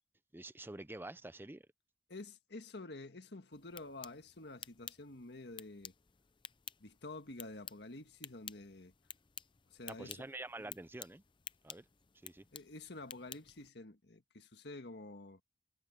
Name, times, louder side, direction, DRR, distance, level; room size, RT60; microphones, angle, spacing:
voice 1, 0.3-1.7 9.9-11.2 11.6-11.9 12.2-12.4, right 2 dB, 10° right, 0.6 m, -47 dB
voice 2, 2.1-5.9 6.8-8.9 9.7-10.3 12.5-15.4, left 2 dB, 70° left, 1.8 m, -49 dB
sound 1, 3.5-13.7, left 8 dB, 30° left, 0.6 m, -53 dB
head